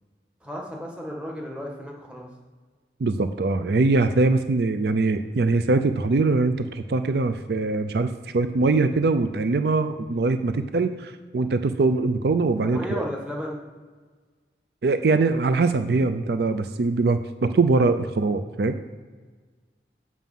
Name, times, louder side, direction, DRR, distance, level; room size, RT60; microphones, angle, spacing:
voice 1, 0.4-2.3 12.6-13.6, equal, 5° right, -2 dB, 1.4 m, -33 dB
voice 2, 3.0-13.1 14.8-18.8, right 3 dB, 65° right, 10 dB, 0.4 m, -22 dB
7.5 x 6.1 x 5.4 m, 1.4 s
head